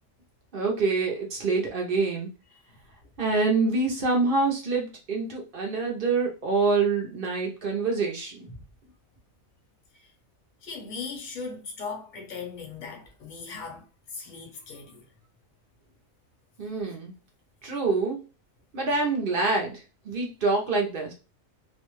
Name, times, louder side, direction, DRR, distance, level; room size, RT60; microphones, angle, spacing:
voice 1, 0.5-2.3 3.2-8.5 16.6-17.1 17.6-18.2 18.7-19.8 20.1-21.1, right 3 dB, 55° right, 0.6 m, -26 dB
voice 2, 10.6-13.8 14.1-15.0, left 4 dB, 45° left, 0.7 m, -38 dB
2.5 x 2.2 x 3.0 m
omnidirectional pair, 1.4 m